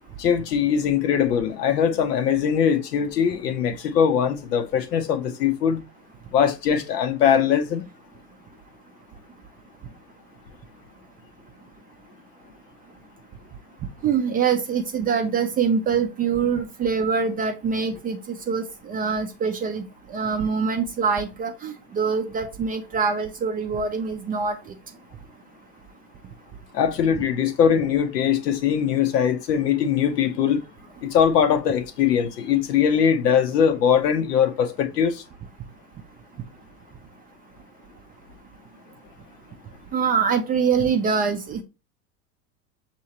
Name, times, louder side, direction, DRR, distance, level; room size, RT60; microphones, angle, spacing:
voice 1, 0.2-5.8 6.3-7.9 26.7-30.6 31.0-35.2, left 8 dB, 80° left, 0.9 m, -21 dB
voice 2, 14.0-19.8 20.1-24.6 39.9-41.6, right 6 dB, 20° right, 0.4 m, -24 dB
6.2 x 2.9 x 2.8 m
hypercardioid pair, 90°, 47 cm